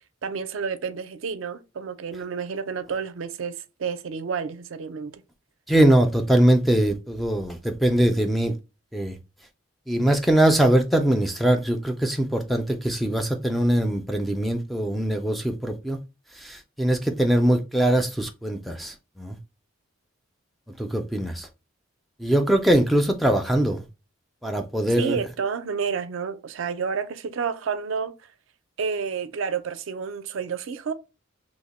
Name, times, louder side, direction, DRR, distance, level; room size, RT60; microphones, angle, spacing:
voice 1, 0.2-5.2 25.0-28.1 28.8-30.9, right 6 dB, 70° right, 0.4 m, -30 dB
voice 2, 5.7-8.5 8.9-9.1 9.9-16.0 16.4-19.4 20.8-21.5 22.2-23.8 24.4-25.2, right 1 dB, ahead, 0.3 m, -22 dB
2.9 x 2.1 x 4.0 m
head